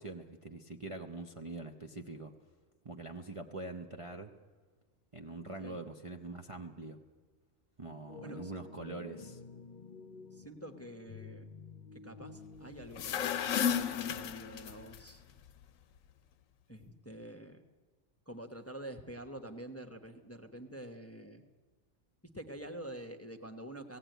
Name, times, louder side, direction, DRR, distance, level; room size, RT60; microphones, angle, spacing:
voice 1, 0.0-2.3 2.8-4.3 5.1-7.0 7.8-9.4, right 3 dB, 30° right, 3 dB, 0.7 m, -44 dB
sound 1, 8.1-13.8, left 5 dB, 40° left, 0.9 m, -51 dB
voice 2, 8.2-8.5 10.3-11.4 11.9-15.2 16.7-17.6 18.3-21.4 22.3-24.0, right 1 dB, 10° left, 5 dB, 0.9 m, -47 dB
sound 2, 12.8-15.0, left 8 dB, 80° left, 1.1 m, -33 dB
17.0 x 16.5 x 9.2 m, 1.4 s
omnidirectional pair, 1.4 m